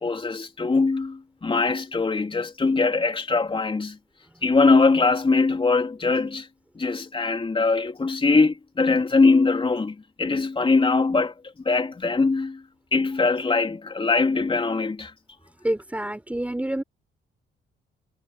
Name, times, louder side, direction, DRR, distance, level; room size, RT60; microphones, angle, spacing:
voice 1, 0.0-4.0 4.4-6.5 6.7-11.3 11.6-12.6 12.9-15.1, left 3 dB, 25° left, 3.3 m, -22 dB
voice 2, 15.6-16.8, right 1 dB, 5° right, 3.8 m, -27 dB
cardioid pair, 90°, 20 cm